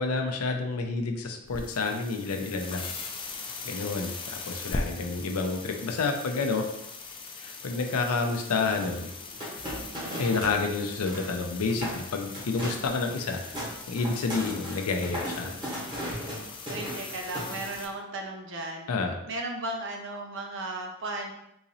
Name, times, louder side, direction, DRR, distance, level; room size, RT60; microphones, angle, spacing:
voice 1, 0.0-2.9 3.6-6.7 7.4-9.1 10.2-13.4 13.9-15.5 18.9-19.2, left 4 dB, 85° left, 3 dB, 0.5 m, -29 dB
sound 1, 1.4-17.9, left 3 dB, 20° left, 0.3 m, -40 dB
sound 2, 8.7-10.6 10.9-11.4 11.7-12.0 12.3-12.9 13.2-17.9, equal, 20° right, 0.9 m, -37 dB
voice 2, 16.7-18.9 19.3-21.3, right 2 dB, 55° right, 2 dB, 0.5 m, -35 dB
3.8 x 2.9 x 2.6 m, 0.81 s
head